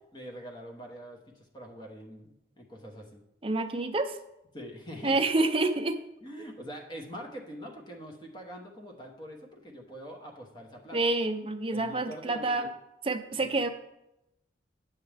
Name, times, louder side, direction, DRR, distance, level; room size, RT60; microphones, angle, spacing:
voice 1, 0.1-3.2 4.5-5.2 6.2-11.1 11.7-12.7 13.3-13.6, equal, 25° left, 1 dB, 1.1 m, -44 dB
voice 2, 3.4-4.2 5.0-6.0 10.9-12.7 13.0-13.7, right 2 dB, 30° right, 7 dB, 0.5 m, -28 dB
8.5 x 7.3 x 3.4 m, 0.88 s
head